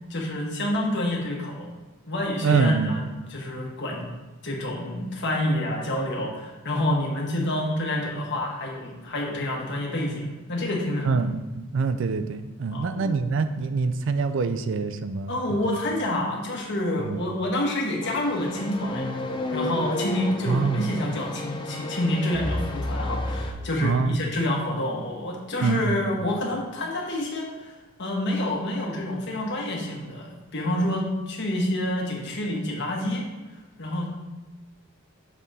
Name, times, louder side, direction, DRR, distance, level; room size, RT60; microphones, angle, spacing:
voice 1, 0.1-1.7 2.1-3.0 3.3-4.1 4.4-11.2 12.7-13.2 15.3-19.1 19.5-27.7 28.0-33.3 33.8-34.1, left 1 dB, 55° left, -1 dB, 1.2 m, -28 dB
voice 2, 2.4-3.1 11.0-15.8 17.1-17.2 20.5-20.9 23.8-24.2 25.6-26.0, right 4 dB, 60° right, 10 dB, 0.4 m, -25 dB
sound 1, 18.0-23.5, left 1 dB, 25° left, 0.5 m, -31 dB
6.4 x 3.8 x 4.1 m, 1.2 s
head